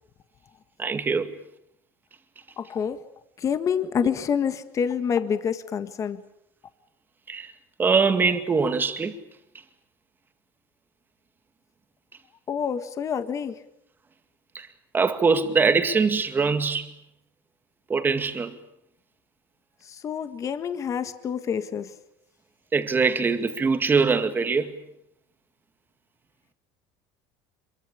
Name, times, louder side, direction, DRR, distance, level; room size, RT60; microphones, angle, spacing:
voice 1, 0.8-1.3 7.3-7.5 7.8-9.2 14.5-14.7 14.9-16.9 17.9-18.5 22.7-24.7, right 5 dB, 20° right, 2.2 m, -22 dB
voice 2, 2.6-3.0 3.4-6.2 12.5-13.5 20.0-21.9, left 7 dB, 30° left, 1.7 m, -27 dB
26.0 x 23.5 x 8.6 m
cardioid pair, 145°, 10 cm